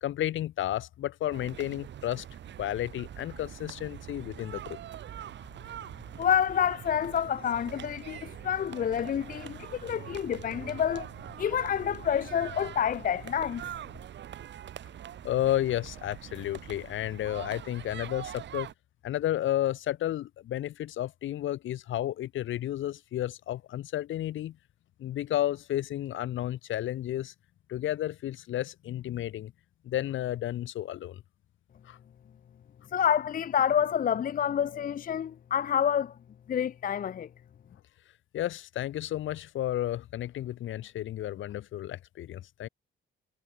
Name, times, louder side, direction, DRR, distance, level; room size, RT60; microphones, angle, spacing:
voice 1, 0.0-2.2 2.6-4.8 15.2-18.7 19.0-24.6 25.0-27.3 27.7-29.5 29.8-31.2 31.8-32.0 38.3-42.7, left 13 dB, 75° left, 2.1 m, -32 dB
sound 1, 1.3-18.7, right 10 dB, 65° right, 2.0 m, -43 dB
voice 2, 6.2-11.1 11.4-13.6 32.9-36.1 36.5-37.3, left 8 dB, 45° left, 0.6 m, -28 dB
cardioid pair, 90°, 20 cm